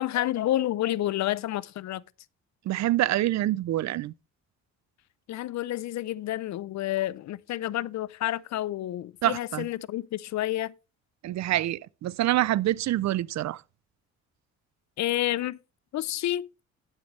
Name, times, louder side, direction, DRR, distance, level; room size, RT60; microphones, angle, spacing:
voice 1, 0.0-2.0 5.3-10.7 15.0-15.6 15.9-16.5, left 14 dB, 65° left, 0.6 m, -29 dB
voice 2, 2.7-4.1 9.2-9.7 11.2-13.6, right 14 dB, 65° right, 0.5 m, -26 dB
11.5 x 9.1 x 3.2 m
cardioid pair, 90°, 30 cm